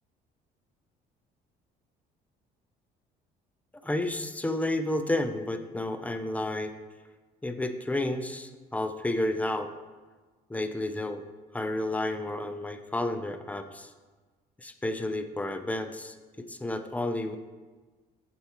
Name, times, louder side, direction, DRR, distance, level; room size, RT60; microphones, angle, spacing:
voice 1, 3.8-6.7 7.4-9.7 10.5-11.2 11.5-13.9 14.6-17.4, left 1 dB, 10° left, 8 dB, 0.3 m, -31 dB
7.7 x 4.5 x 2.9 m, 1.3 s
cardioid pair, 110°, 17 cm